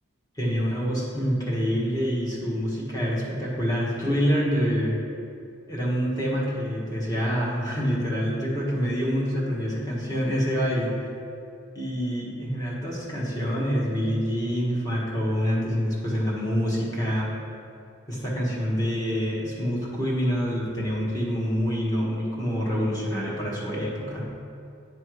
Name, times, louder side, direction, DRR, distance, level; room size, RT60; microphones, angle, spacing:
voice 1, 0.4-5.0 5.7-10.9 11.7-17.3 18.1-24.3, equal, 15° left, -6 dB, 1.4 m, -26 dB
9.2 x 3.4 x 4.7 m, 2.5 s
head